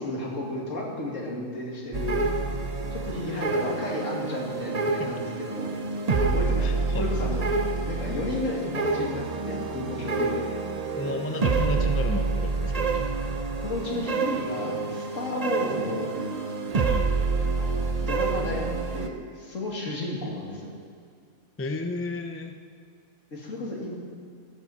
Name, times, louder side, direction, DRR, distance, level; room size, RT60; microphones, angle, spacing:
voice 1, 0.0-2.2 2.9-5.7 6.2-7.4 7.8-10.6 13.6-16.2 17.6-18.7 18.9-20.7 23.3-23.9, left 2 dB, 65° left, -2 dB, 2.8 m, -33 dB
sound 1, 1.9-19.1, right 4 dB, 35° right, 0.7 m, -27 dB
voice 2, 6.6-7.1 10.9-13.1 16.9-17.1 21.6-22.6, left 2 dB, 15° left, 5 dB, 0.6 m, -33 dB
15.0 x 13.5 x 4.2 m, 2.2 s
omnidirectional pair, 1.4 m